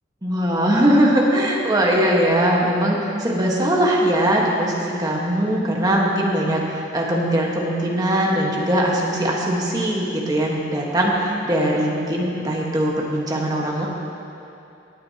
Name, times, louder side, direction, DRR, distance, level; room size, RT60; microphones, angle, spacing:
voice 1, 0.2-13.9, right 1 dB, 20° right, -3 dB, 1.4 m, -20 dB
19.5 x 8.8 x 2.9 m, 2.7 s
head